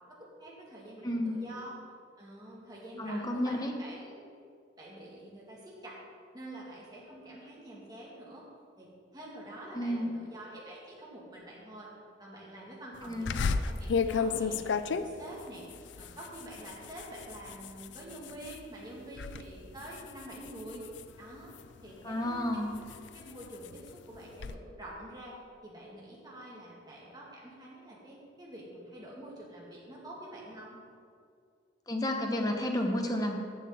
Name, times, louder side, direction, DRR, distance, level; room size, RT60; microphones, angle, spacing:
voice 1, 0.2-1.7 2.2-4.2 4.8-6.0 6.3-8.4 8.8-8.9 9.1-11.9 12.2-15.6 16.0-20.9 21.2-21.5 21.8-22.6 23.1-30.8, right 1 dB, 20° right, -5 dB, 2.1 m, -47 dB
voice 2, 1.0-1.4 3.0-3.7 9.7-10.1 13.0-13.4 22.0-22.8 31.9-33.4, left 1 dB, 20° left, 2 dB, 0.9 m, -31 dB
sound 1, 13.3-18.6 19.0-19.4 19.8-21.8 22.4-24.5, left 5 dB, 75° left, 0.4 m, -34 dB
7.3 x 6.7 x 7.6 m, 2.3 s
head